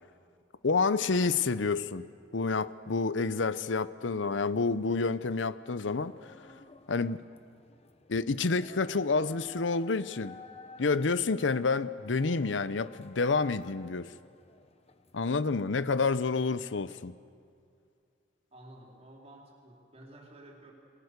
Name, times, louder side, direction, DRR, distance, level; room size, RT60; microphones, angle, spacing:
voice 1, 0.6-2.0 2.3-6.3 6.9-7.2 8.1-10.4 10.8-14.1 15.1-17.1, left 4 dB, 85° left, 15 dB, 0.8 m, -29 dB
sound 1, 6.0-16.9, left 3 dB, 35° left, 1.2 m, -53 dB
voice 2, 18.5-20.7, right 1 dB, 35° right, 0 dB, 4.1 m, -52 dB
28.5 x 20.0 x 6.7 m, 2.4 s
head